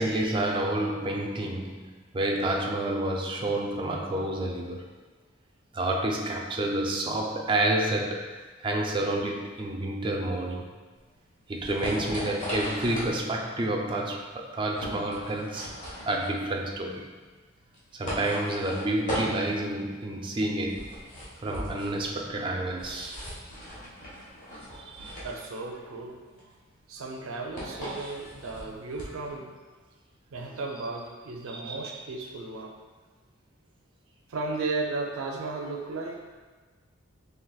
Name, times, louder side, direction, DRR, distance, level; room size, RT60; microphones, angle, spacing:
voice 1, 0.0-4.8 5.7-10.7 11.5-15.7 16.1-17.0 17.9-21.0 21.4-23.2 24.8-25.3 31.5-31.7, right 1 dB, 25° right, 0 dB, 0.4 m, -29 dB
sound 1, 11.0-29.3, equal, 40° left, 1.2 m, -38 dB
voice 2, 25.2-26.5 26.9-29.5 30.3-32.7 34.3-36.2, right 3 dB, 85° right, 0 dB, 0.5 m, -35 dB
4.6 x 3.3 x 2.3 m, 1.3 s
head